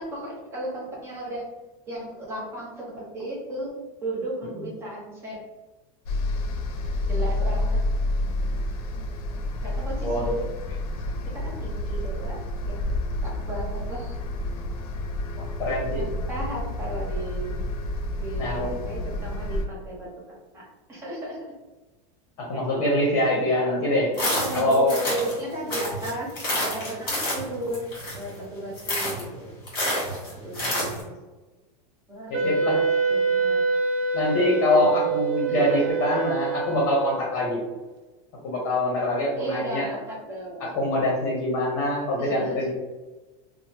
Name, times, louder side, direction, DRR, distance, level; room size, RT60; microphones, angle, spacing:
voice 1, 0.0-1.5 1.9-3.7 4.0-5.4 7.1-7.8 9.6-10.5 11.2-12.8 13.2-14.2 16.0-17.7 18.2-20.1 20.5-21.5 24.1-26.3 26.6-27.9 28.1-29.5 30.3-31.1 32.1-32.8 33.1-33.6 34.8-35.1 35.5-36.2 39.4-40.7 42.2-42.7, right 1 dB, 15° right, -4 dB, 0.6 m, -34 dB
sound 1, 6.1-19.7, left 1 dB, 85° left, 0.5 m, -29 dB
voice 2, 15.4-16.0 18.4-18.7 22.4-24.1 24.5-25.0 30.6-30.7 32.3-32.8 34.1-37.6 38.4-39.9 40.8-42.7, left 1 dB, 45° left, -2 dB, 0.7 m, -24 dB
sound 2, 24.1-25.4 25.7-28.4 28.7-29.3 29.7-31.0, left 1 dB, 25° left, 1.4 m, -28 dB
Wind instrument woodwind instrument, 32.3-37.5, right 4 dB, 55° right, 0.5 m, -26 dB
3.0 x 2.0 x 2.8 m, 1.2 s
supercardioid pair, 175°, 19 cm